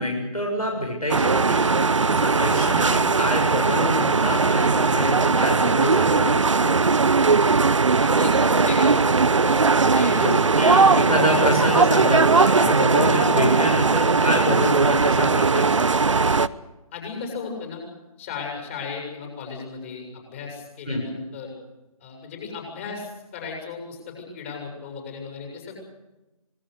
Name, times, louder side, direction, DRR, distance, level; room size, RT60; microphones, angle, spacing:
voice 1, 0.0-6.8 10.1-15.9 20.9-21.1, equal, 90° left, 1 dB, 7.6 m, -26 dB
sound 1, 1.1-16.5, right 4 dB, 55° right, 0.9 m, -19 dB
voice 2, 8.0-10.2 10.5-11.0 16.9-17.8 18.2-21.5 22.0-25.7, left 5 dB, 20° left, 1 dB, 7.2 m, -35 dB
26.5 x 21.5 x 6.8 m, 1.0 s
figure-of-eight pair, 150°, 19 cm